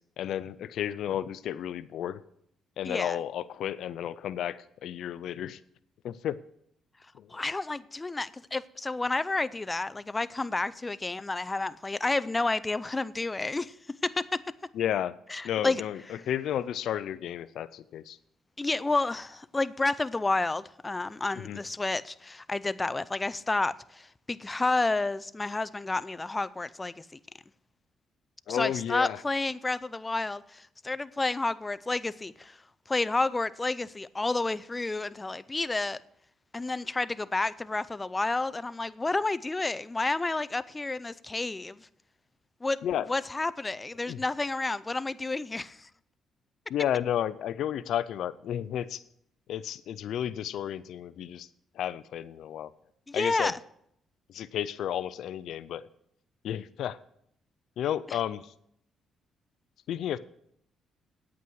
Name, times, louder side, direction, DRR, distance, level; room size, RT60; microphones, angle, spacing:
voice 1, 0.2-2.2 2.8-5.6 6.0-6.4 7.2-7.3 14.7-15.2 15.4-18.2 21.4-21.6 28.5-29.2 42.8-43.1 44.1-44.2 46.7-49.0 49.5-51.5 51.8-52.7 53.1-53.5 54.3-55.8 56.4-57.0 57.8-58.5 59.9-60.2, left 10 dB, 75° left, 0.4 m, -32 dB
voice 2, 2.9-3.2 7.3-14.4 15.3-15.8 18.6-27.2 28.5-32.6 32.9-36.0 36.5-41.9 42.6-42.8 43.1-45.9 53.1-53.6 58.1-58.2, left 3 dB, 20° left, 0.5 m, -30 dB
9.2 x 8.4 x 6.3 m
cardioid pair, 90°, 0 cm